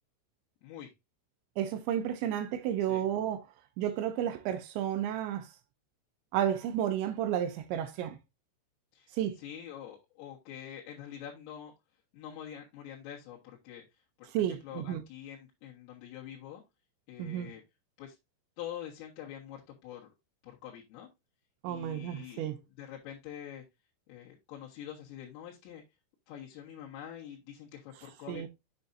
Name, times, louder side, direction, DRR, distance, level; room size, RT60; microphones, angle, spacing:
voice 1, 0.6-0.9 2.9-3.1 8.9-9.1 9.4-11.7 12.1-16.6 17.1-17.6 18.0-18.2 18.6-20.1 20.4-21.1 21.7-22.5 22.8-23.6 24.1-25.8 26.3-28.5, left 10 dB, 90° left, 4.1 m, -45 dB
voice 2, 1.6-3.4 3.8-5.5 6.3-8.2 9.1-9.4 14.3-15.0 17.2-17.5 21.6-22.6 28.3-28.5, right 10 dB, 80° right, 2.8 m, -32 dB
8.0 x 6.9 x 2.6 m
omnidirectional pair, 5.8 m